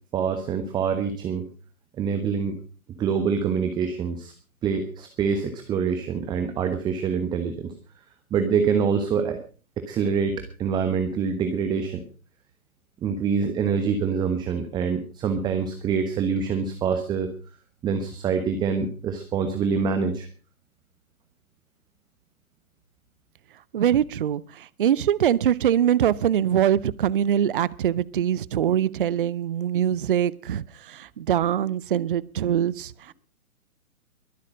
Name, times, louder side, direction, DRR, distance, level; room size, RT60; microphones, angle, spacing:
voice 1, 0.1-1.4 2.0-2.6 3.0-4.3 4.6-7.7 8.3-9.4 9.8-12.0 13.0-17.3 17.8-20.3, right 6 dB, 10° right, 1.0 m, -25 dB
voice 2, 23.7-33.1, right 10 dB, 40° right, 0.6 m, -23 dB
22.5 x 8.3 x 5.0 m
figure-of-eight pair, 130°, 43 cm